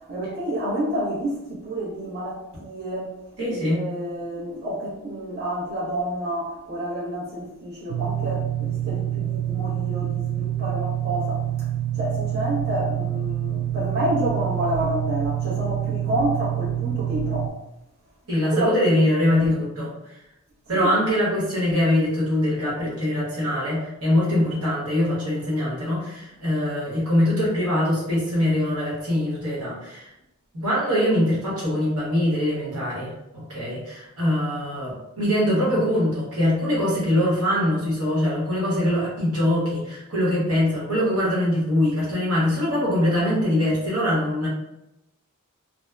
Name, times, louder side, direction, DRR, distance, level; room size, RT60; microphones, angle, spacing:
voice 1, 0.1-3.1 3.4-11.4 12.0-17.5 18.5-18.7 20.7-20.9, right 1 dB, 45° right, -9 dB, 0.8 m, -29 dB
voice 2, 3.4-3.8 18.3-19.9 20.7-30.1 30.5-44.5, left 1 dB, 85° right, -6 dB, 1.1 m, -23 dB
sound 1, 7.9-17.5, right 12 dB, 65° right, 0.3 m, -27 dB
2.7 x 2.0 x 2.2 m, 0.89 s
head